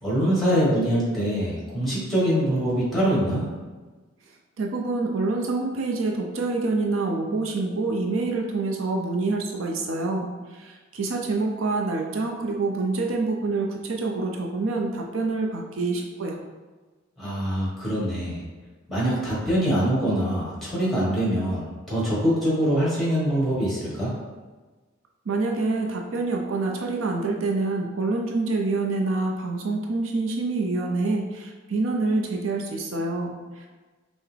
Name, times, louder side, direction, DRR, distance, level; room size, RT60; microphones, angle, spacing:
voice 1, 0.0-3.4 17.2-18.4 18.9-24.1, equal, ahead, -7 dB, 1.4 m, -24 dB
voice 2, 4.6-16.4 25.3-33.7, right 3 dB, 80° right, 1 dB, 0.5 m, -26 dB
5.6 x 2.1 x 3.3 m, 1.3 s
head